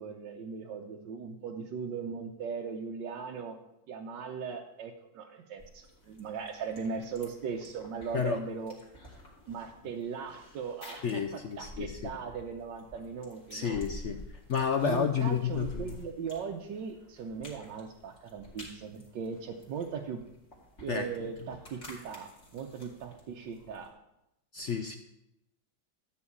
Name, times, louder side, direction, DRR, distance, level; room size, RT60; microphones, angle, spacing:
voice 1, 0.0-3.6 3.9-8.7 9.5-13.8 14.8-20.2 20.8-23.9, right 6 dB, 85° right, 1 dB, 1.5 m, -38 dB
sound 1, 5.6-23.9, left 1 dB, 40° left, 3.1 m, -51 dB
voice 2, 11.0-12.1 13.5-14.2 14.5-15.9 20.9-21.1 24.5-25.0, left 7 dB, 65° left, 7 dB, 0.7 m, -30 dB
13.0 x 4.7 x 8.6 m, 0.86 s
omnidirectional pair, 1.9 m